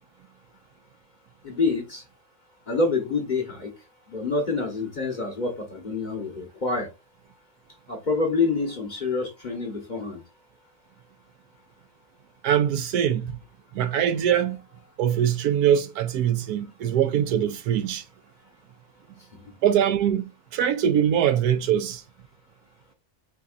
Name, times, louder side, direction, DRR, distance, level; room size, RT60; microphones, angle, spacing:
voice 1, 1.4-2.0 2.7-3.7 4.1-6.9 7.9-10.2, left 3 dB, 35° left, 0.9 m, -27 dB
voice 2, 12.4-13.4 13.7-14.6 15.0-18.0 19.6-22.0, right 9 dB, 80° right, 1.1 m, -23 dB
4.9 x 4.0 x 2.4 m
omnidirectional pair, 1.6 m